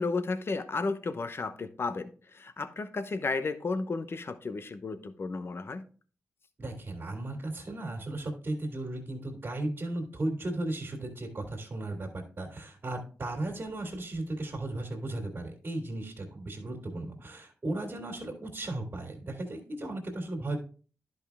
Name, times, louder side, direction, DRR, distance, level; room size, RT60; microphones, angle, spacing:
voice 1, 0.0-5.8, left 3 dB, 50° left, 10 dB, 0.9 m, -33 dB
voice 2, 6.6-20.6, right 2 dB, 45° right, 0 dB, 2.4 m, -36 dB
10.5 x 5.4 x 3.5 m, 0.39 s
cardioid pair, 65°, 5 cm